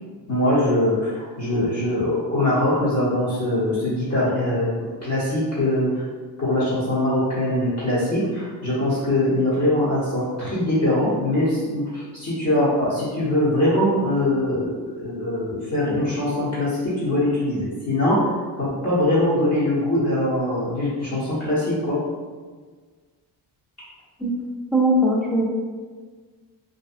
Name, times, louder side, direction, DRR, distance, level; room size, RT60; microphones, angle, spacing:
voice 1, 0.3-4.7 5.0-6.0 6.4-14.7 14.9-22.0, left 1 dB, 35° left, -11 dB, 1.0 m, -22 dB
voice 2, 24.7-25.4, right 1 dB, ahead, -4 dB, 0.5 m, -19 dB
2.7 x 2.2 x 2.5 m, 1.5 s
cardioid pair, 90°, 42 cm